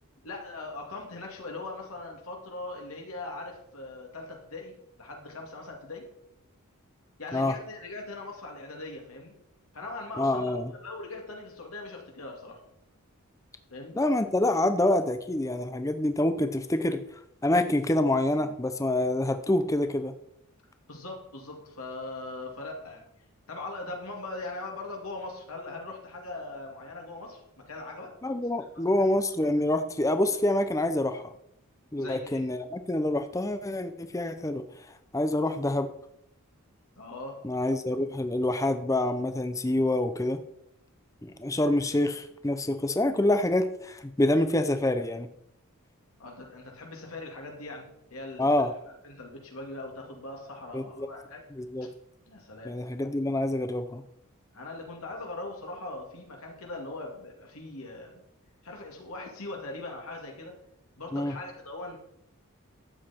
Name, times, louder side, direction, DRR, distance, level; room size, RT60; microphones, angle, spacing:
voice 1, 0.2-4.7 5.0-6.0 7.2-9.3 9.7-12.6 13.7-14.0 20.9-23.0 23.5-27.4 27.7-28.1 32.0-32.4 37.0-37.4 46.2-47.9 48.1-48.7 49.0-51.4 51.8-51.9 52.3-52.7 54.5-58.2 58.6-60.5 61.0-62.0, left 2 dB, 75° left, 0 dB, 2.5 m, -40 dB
voice 2, 10.2-10.7 13.9-17.0 17.4-20.1 28.2-31.2 31.9-34.6 35.1-35.9 37.4-40.4 41.2-45.3 48.4-48.7 50.7-51.1 51.5-51.9 52.6-54.0 61.1-61.3, left 1 dB, 15° left, 9 dB, 0.6 m, -26 dB
12.5 x 8.2 x 4.4 m, 0.77 s
head